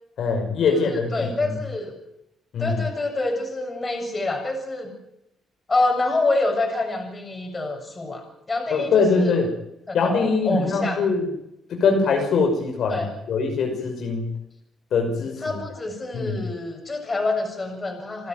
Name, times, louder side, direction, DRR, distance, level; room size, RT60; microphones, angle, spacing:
voice 1, 0.2-1.5 2.5-2.8 8.7-9.5 9.9-11.3 11.7-14.3 14.9-15.6 16.1-16.4, left 4 dB, 65° left, 2 dB, 6.0 m, -22 dB
voice 2, 0.7-1.9 2.6-4.9 5.7-9.3 9.9-11.0 12.9-13.1 15.4-18.3, left 2 dB, 25° left, 4 dB, 7.1 m, -27 dB
28.5 x 12.0 x 9.4 m, 0.84 s
cardioid pair, 90°, 0 cm